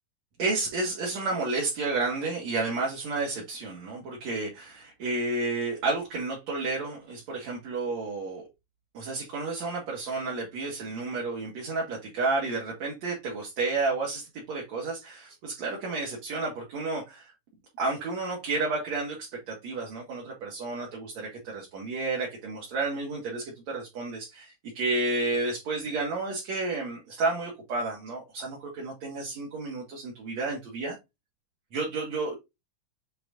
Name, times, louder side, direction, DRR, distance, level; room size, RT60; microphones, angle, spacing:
voice 1, 0.4-8.4 8.9-17.3 17.8-31.0 31.7-32.3, right 3 dB, 55° right, 3.5 m, -31 dB
7.9 x 4.9 x 2.6 m
omnidirectional pair, 3.9 m